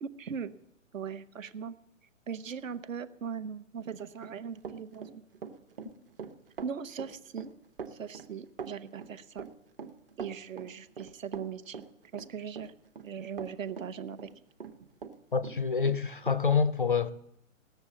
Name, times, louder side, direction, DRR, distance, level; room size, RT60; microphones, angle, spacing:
voice 1, 0.0-0.5 0.9-1.7 2.3-5.2 6.6-7.5 7.9-9.5 10.2-11.8 12.1-12.7 13.0-14.3, right 7 dB, 75° right, 1.0 m, -39 dB
Run, 4.0-15.2 15.4-16.4, right 6 dB, 45° right, 0.9 m, -43 dB
voice 2, 15.3-17.1, left 5 dB, 40° left, 0.4 m, -27 dB
17.5 x 6.8 x 7.3 m
hypercardioid pair, 180°, 40 cm